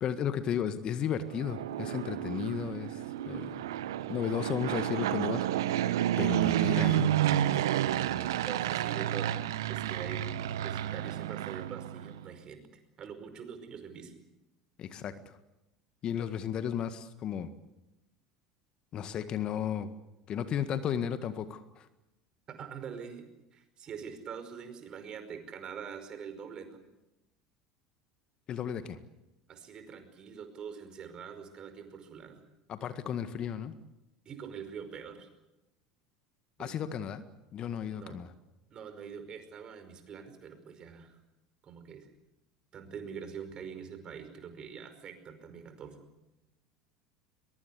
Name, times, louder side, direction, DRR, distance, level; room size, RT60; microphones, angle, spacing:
voice 1, 0.0-3.0 3.3-3.7 4.1-5.5 6.2-7.1 14.8-15.3 16.0-17.5 18.9-19.9 20.3-21.9 28.5-29.0 32.7-33.7 36.6-37.2 37.5-38.3, left 8 dB, 45° left, 11 dB, 1.7 m, -34 dB
Fixed-wing aircraft airplane, 1.2-12.3, right 12 dB, 75° right, 1.0 m, -31 dB
voice 2, 8.4-9.3 9.7-12.7 13.0-14.1 22.5-26.8 29.5-32.4 34.3-35.3 36.6-36.8 37.9-38.2 38.7-41.2 41.6-42.1 42.7-46.0, right 7 dB, 40° right, 9 dB, 5.1 m, -44 dB
22.5 x 22.5 x 8.3 m, 0.97 s
hypercardioid pair, 75°, 2 cm